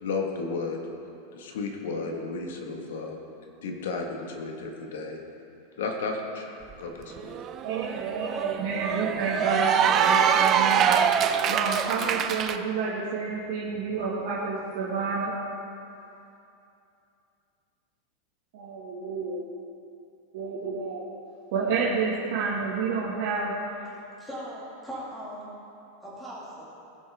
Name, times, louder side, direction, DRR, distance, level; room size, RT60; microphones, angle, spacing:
voice 1, 0.0-0.8 1.3-3.2 3.6-5.2 5.8-7.4, left 4 dB, 85° left, 2 dB, 1.6 m, -33 dB
Cheering / Applause, 6.7-6.8 7.1-12.6, right 8 dB, 25° right, 0.4 m, -24 dB
voice 2, 7.6-10.9 11.5-15.3 18.5-19.4 20.3-21.1 21.5-23.5, right 4 dB, 55° right, -8 dB, 1.9 m, -29 dB
voice 3, 24.2-25.5 26.0-26.6, equal, 5° left, -8 dB, 2.3 m, -39 dB
18.0 x 6.3 x 3.6 m, 2.7 s
supercardioid pair, 175°, 0 cm